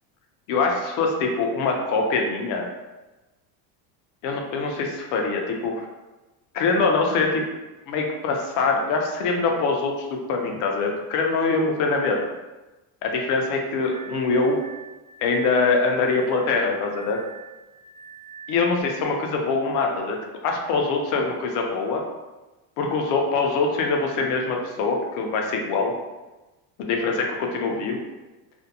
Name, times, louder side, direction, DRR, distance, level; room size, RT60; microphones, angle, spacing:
voice 1, 0.5-2.7 4.2-5.9 6.5-7.5 7.9-12.2 13.0-14.6 15.2-17.2 18.5-20.2 20.4-22.0 22.8-25.9 26.8-28.0, left 4 dB, 55° left, 2 dB, 0.5 m, -23 dB
Glass, 13.8-18.8, right 5 dB, 10° right, 0.5 m, -44 dB
2.5 x 2.1 x 2.7 m, 1.1 s
cardioid pair, 150°, 38 cm